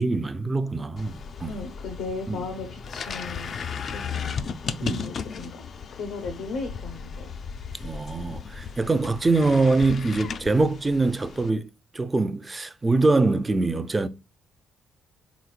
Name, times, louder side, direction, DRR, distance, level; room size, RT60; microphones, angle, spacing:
voice 1, 0.0-1.5 2.3-2.4 4.8-5.1 7.8-14.1, right 3 dB, 20° right, 0.4 m, -24 dB
sound 1, 1.0-11.5, left 6 dB, 55° left, 0.4 m, -35 dB
voice 2, 1.5-3.5 3.8-4.3 4.6-5.6 5.9-7.3, left 3 dB, 85° left, 0.8 m, -36 dB
4.2 x 4.0 x 2.4 m
cardioid pair, 90°, 0 cm